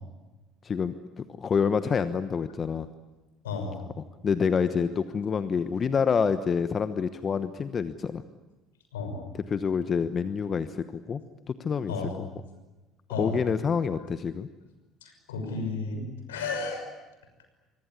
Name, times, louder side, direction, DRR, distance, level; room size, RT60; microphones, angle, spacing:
voice 1, 0.6-2.9 4.2-8.2 9.5-11.2 11.5-11.9 13.2-14.5, left 6 dB, 35° left, 12 dB, 1.1 m, -27 dB
voice 2, 3.4-3.8 8.9-9.2 11.9-12.1 13.1-13.3 15.0-16.0 16.3-16.8, left 4 dB, 75° left, 5 dB, 6.1 m, -32 dB
26.0 x 24.5 x 8.5 m, 1.1 s
figure-of-eight pair, 60°, 0 cm